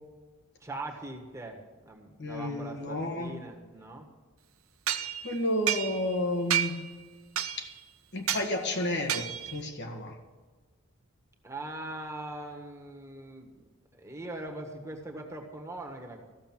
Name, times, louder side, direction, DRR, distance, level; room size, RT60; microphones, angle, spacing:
voice 1, 0.6-4.1 11.4-13.5 13.9-16.2, right 2 dB, 15° right, 1 dB, 1.5 m, -41 dB
voice 2, 2.2-3.4 5.2-6.8 7.6-7.7 8.1-10.2, left 1 dB, 55° left, 3 dB, 1.4 m, -31 dB
sound 1, 4.9-6.2 6.5-6.9 7.4-7.8 8.3-8.5 9.1-9.6, right 10 dB, 85° right, 0.8 m, -31 dB
15.0 x 6.7 x 6.0 m, 1.4 s
head